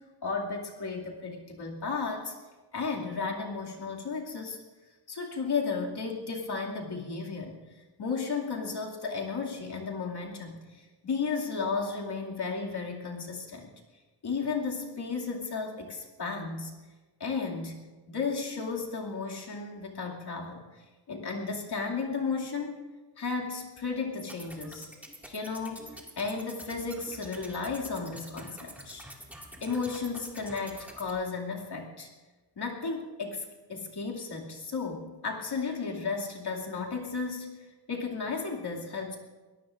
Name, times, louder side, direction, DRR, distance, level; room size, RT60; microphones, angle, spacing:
voice 1, 0.2-2.3 2.7-4.6 5.1-7.6 8.0-13.7 14.2-16.7 17.2-17.8 18.1-22.8 23.2-24.9 25.3-25.9 26.2-29.1 29.6-32.1 32.6-37.5 37.9-39.2, left 4 dB, 60° left, -1 dB, 2.5 m, -34 dB
sound 1, 24.2-31.1, equal, 5° right, 2.1 m, -47 dB
23.5 x 17.5 x 2.5 m, 1.3 s
wide cardioid pair, 145°, 44 cm